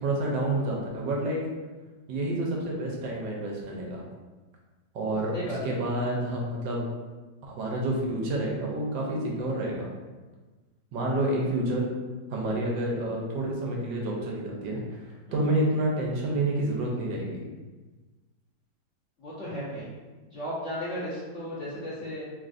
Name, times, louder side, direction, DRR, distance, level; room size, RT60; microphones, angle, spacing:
voice 1, 0.0-1.4 2.1-4.0 4.9-5.3 5.6-6.9 7.4-9.9 10.9-11.8 12.3-14.8 15.3-17.4, right 1 dB, 80° right, -2 dB, 1.3 m, -29 dB
voice 2, 5.3-5.8 15.3-15.4 19.2-19.9 20.3-22.2, equal, 50° left, -10 dB, 1.0 m, -35 dB
3.4 x 2.4 x 2.4 m, 1.3 s
omnidirectional pair, 2.0 m